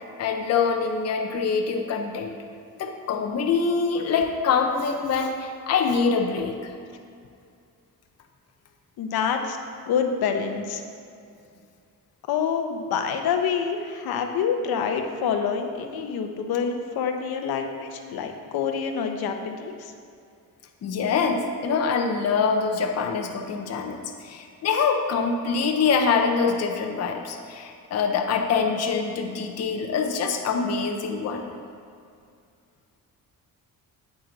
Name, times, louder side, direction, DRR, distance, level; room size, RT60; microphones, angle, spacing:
voice 1, 0.2-2.3 2.8-6.7 20.8-31.5, left 5 dB, 45° left, 3 dB, 0.7 m, -25 dB
voice 2, 9.0-9.6 9.9-10.8 12.3-19.9, left 6 dB, 85° left, 5 dB, 0.8 m, -27 dB
8.8 x 8.1 x 3.9 m, 2.4 s
cardioid pair, 175°, 36 cm